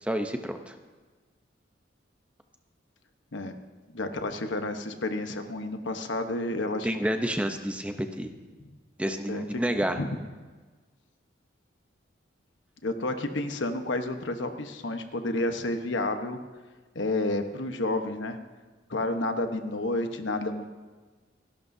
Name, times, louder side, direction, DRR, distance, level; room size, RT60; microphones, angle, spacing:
voice 1, 0.0-0.7 6.8-8.3 9.0-10.0, equal, 5° right, 6 dB, 0.7 m, -29 dB
voice 2, 3.9-7.0 8.6-8.7 9.3-9.6 10.0-10.1 12.8-16.4 16.9-18.4 18.9-20.7, left 2 dB, 80° left, 6 dB, 1.1 m, -30 dB
28.5 x 11.5 x 2.7 m, 1.3 s
head